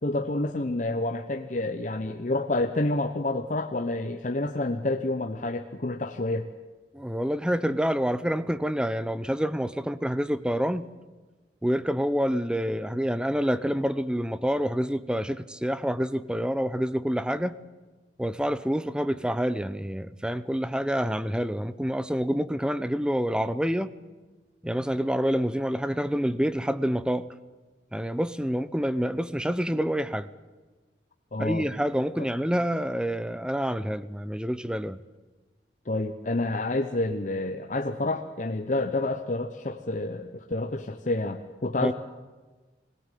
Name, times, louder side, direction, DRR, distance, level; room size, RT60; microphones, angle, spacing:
voice 1, 0.0-6.5 31.3-31.7 35.9-41.9, left 2 dB, 45° left, 5 dB, 0.9 m, -29 dB
voice 2, 6.9-10.9 11.6-17.6 18.2-23.9 24.6-27.2 27.9-30.3 31.4-35.0 41.8-41.9, equal, 5° right, 15 dB, 0.6 m, -27 dB
22.0 x 17.0 x 9.2 m, 1.3 s
head